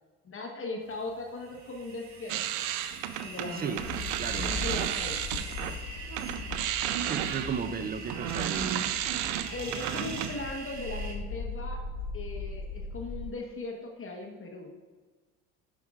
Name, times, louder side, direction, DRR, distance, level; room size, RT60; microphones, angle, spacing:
voice 1, 0.2-2.6 3.2-3.8 4.4-5.2 9.5-11.8 12.1-14.7, left 3 dB, 30° left, 1 dB, 1.1 m, -38 dB
sound 1, 0.9-11.1, right 3 dB, 40° right, 1.5 m, -42 dB
sound 2, 2.3-5.8 6.1-10.4, right 11 dB, 70° right, 0.6 m, -33 dB
sound 3, 3.8-13.3, left 4 dB, 50° left, 1.4 m, -40 dB
voice 2, 4.2-4.5 7.1-8.8, right 6 dB, 25° right, 10 dB, 0.4 m, -34 dB
9.4 x 6.2 x 2.4 m, 1.4 s
hypercardioid pair, 80°, 43 cm